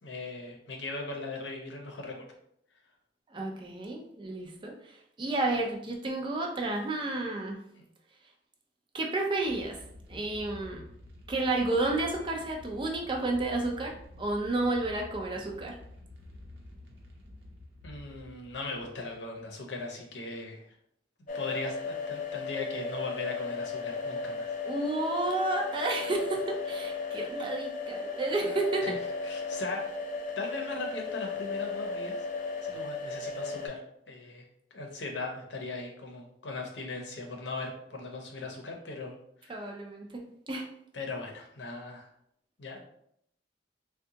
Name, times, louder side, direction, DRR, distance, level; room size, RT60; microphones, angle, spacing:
voice 1, 0.0-2.2 7.7-7.8 17.8-20.6 21.3-24.5 28.8-29.0 29.2-29.8 30.4-32.2 32.6-33.8 34.1-34.4 34.7-39.2 39.4-39.7 40.9-42.1 42.6-42.8, left 3 dB, 80° left, 2 dB, 0.7 m, -38 dB
voice 2, 3.3-7.6 8.9-9.8 10.1-10.9 11.3-15.8 24.6-28.9 39.5-40.7, right 2 dB, 30° right, 1 dB, 0.4 m, -31 dB
sound 1, 9.4-19.5, left 2 dB, 80° right, 0.8 m, -49 dB
sound 2, 21.3-33.7, left 4 dB, 45° left, 0.5 m, -35 dB
3.6 x 2.2 x 2.8 m, 0.72 s
head